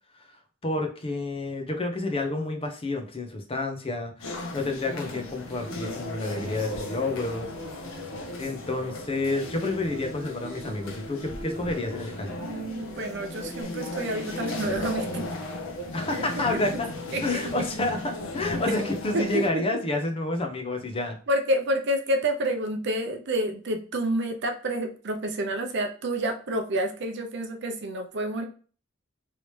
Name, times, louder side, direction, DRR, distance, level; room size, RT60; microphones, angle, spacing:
voice 1, 0.6-7.5 8.4-12.4 15.9-16.9 17.2-21.2, left 2 dB, 30° left, 4 dB, 0.6 m, -29 dB
sound 1, 4.2-19.5, left 2 dB, 90° left, 0.9 m, -36 dB
Human voice, 5.6-13.6, right 1 dB, 35° right, 1.1 m, -43 dB
voice 2, 12.4-15.3 16.3-16.4 17.1-17.4 19.1-19.6 21.3-28.5, right 1 dB, 60° right, 5 dB, 0.6 m, -29 dB
3.2 x 2.8 x 3.1 m, 0.40 s
head